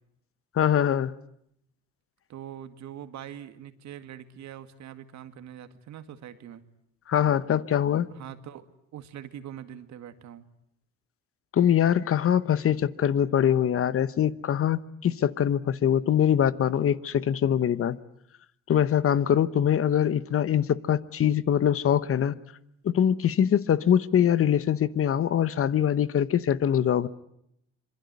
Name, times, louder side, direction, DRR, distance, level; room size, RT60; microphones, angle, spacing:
voice 1, 0.5-1.1 7.1-8.1 11.5-18.0 18.7-22.3 22.8-27.1, left 9 dB, 45° left, 1.0 m, -23 dB
voice 2, 2.3-6.6 8.1-10.5, right 10 dB, 65° right, 2.1 m, -43 dB
26.5 x 23.0 x 9.5 m
cardioid pair, 105°, 30 cm